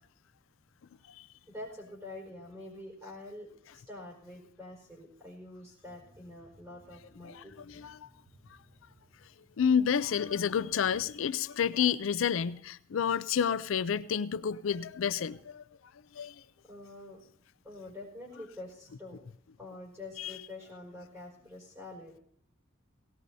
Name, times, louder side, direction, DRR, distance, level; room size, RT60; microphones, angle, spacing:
voice 1, 1.5-7.9 16.6-17.2 17.6-19.2 19.6-22.2, left 2 dB, 15° right, 4.7 m, -46 dB
sound 1, 5.8-11.1, right 1 dB, 85° right, 3.7 m, -61 dB
voice 2, 7.2-8.1 9.6-15.6 16.1-16.4 20.2-20.3, left 7 dB, 85° left, 0.4 m, -30 dB
18.0 x 17.5 x 2.7 m
head